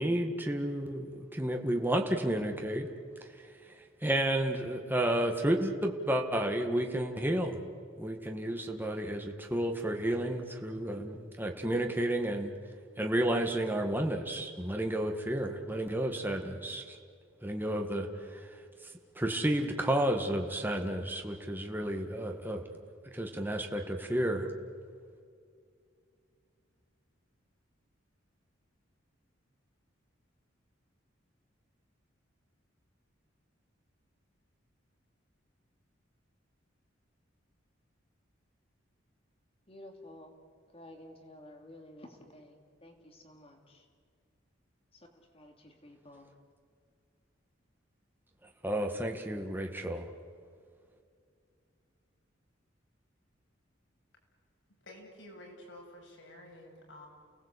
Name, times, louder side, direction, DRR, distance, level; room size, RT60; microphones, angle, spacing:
voice 1, 0.0-2.9 3.2-7.6 8.0-12.5 13.0-17.0 17.4-22.7 23.0-24.5 48.6-50.1, right 1 dB, 10° right, 3 dB, 1.8 m, -32 dB
voice 2, 39.7-40.4 40.7-43.9 44.9-46.3, left 1 dB, 30° left, 3 dB, 2.8 m, -52 dB
voice 3, 54.8-57.1, left 1 dB, 75° left, 0 dB, 7.8 m, -50 dB
29.5 x 19.0 x 8.5 m, 2.3 s
head